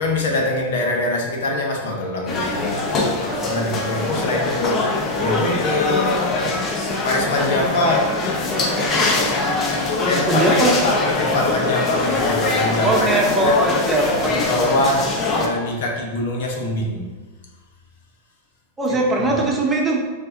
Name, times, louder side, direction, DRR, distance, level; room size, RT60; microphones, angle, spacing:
voice 1, 0.0-4.9 5.2-6.2 7.0-8.2 9.7-13.6 14.2-17.1 18.9-19.5, left 2 dB, 70° left, 0 dB, 1.0 m, -24 dB
sound 1, 2.3-15.5, left 3 dB, 30° left, 0.7 m, -22 dB
voice 2, 10.0-10.7 12.8-14.3 18.8-20.0, right 2 dB, 15° right, -2 dB, 0.9 m, -20 dB
4.6 x 2.8 x 3.8 m, 1.3 s
hypercardioid pair, 115°, 0 cm